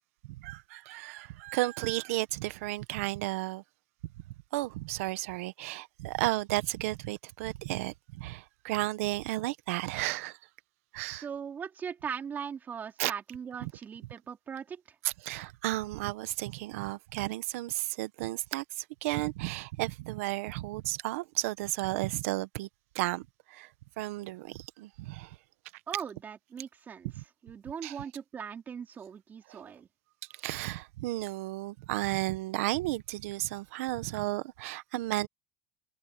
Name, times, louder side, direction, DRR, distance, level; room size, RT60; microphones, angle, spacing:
voice 1, 0.3-3.6 4.5-10.4 10.9-11.3 13.0-13.1 15.2-22.7 22.9-23.7 24.0-25.4 27.1-27.2 27.8-28.0 29.5-29.6 30.4-35.3, right 19 dB, 80° right, 1.3 m, -33 dB
voice 2, 11.2-15.0 25.9-27.1 27.4-29.9, right 7 dB, 25° right, 3.9 m, -39 dB
supercardioid pair, 145°, 7 cm